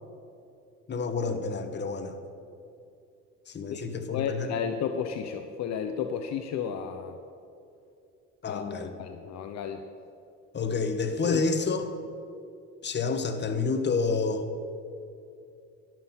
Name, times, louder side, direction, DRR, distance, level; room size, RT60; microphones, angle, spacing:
voice 1, 0.9-2.2 3.5-4.5 8.4-8.9 10.5-11.9 12.8-14.5, left 4 dB, 35° left, 7 dB, 1.1 m, -29 dB
voice 2, 3.7-7.2 8.5-8.6 9.0-9.8 11.2-11.4, left 7 dB, 60° left, 7 dB, 0.7 m, -32 dB
11.0 x 6.0 x 7.2 m, 2.6 s
supercardioid pair, 80°, 30 cm